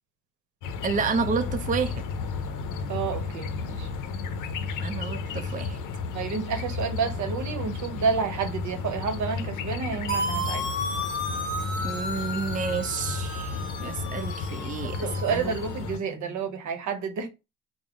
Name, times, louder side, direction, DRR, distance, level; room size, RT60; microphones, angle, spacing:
sound 1, 0.6-16.0, left 4 dB, 85° left, 0.6 m, -33 dB
voice 1, 0.8-1.9 4.8-5.8 11.8-15.0 15.3-15.5, right 5 dB, 25° right, 0.5 m, -30 dB
voice 2, 2.9-3.9 6.1-10.6 14.8-17.3, right 5 dB, 75° right, 0.8 m, -30 dB
sound 2, 10.1-15.9, equal, 40° left, 1.0 m, -33 dB
3.5 x 2.1 x 3.5 m
cardioid pair, 90°, 30 cm